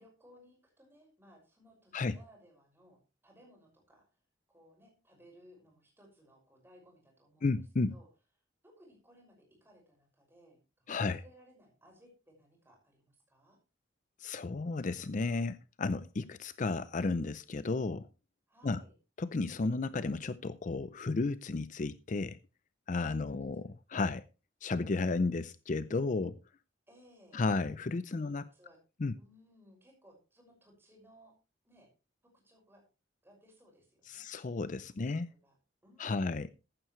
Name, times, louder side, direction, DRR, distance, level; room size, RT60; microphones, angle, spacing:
voice 1, 0.0-4.0 4.5-7.5 7.9-8.1 8.6-13.6 18.5-18.9 23.2-23.7 25.4-25.6 26.9-27.4 28.1-28.8 29.1-31.3 31.6-31.9 32.4-32.8 33.2-34.3 35.0-35.1 35.4-35.6 35.8-36.4, equal, 15° right, 6.0 m, -61 dB
voice 2, 7.4-7.9 10.9-11.2 14.2-18.1 18.6-18.8 19.2-22.4 22.9-24.2 24.6-26.4 27.3-28.4 29.0-29.1 34.1-35.3 36.0-36.5, left 3 dB, 45° left, 0.5 m, -33 dB
15.0 x 11.0 x 3.1 m
head